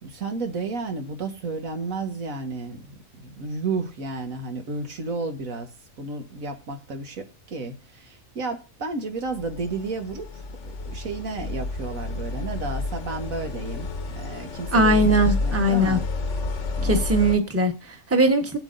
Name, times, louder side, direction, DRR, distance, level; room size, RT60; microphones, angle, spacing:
voice 1, 0.0-2.9 3.2-5.7 6.0-13.9 14.2-16.0 16.8-17.0, right 3 dB, 85° right, 1.9 m, -32 dB
sound 1, 9.3-17.4, left 3 dB, 65° left, 1.3 m, -30 dB
voice 2, 14.7-16.0 16.8-18.6, right 1 dB, 10° right, 1.1 m, -20 dB
18.5 x 8.0 x 2.6 m
omnidirectional pair, 1.4 m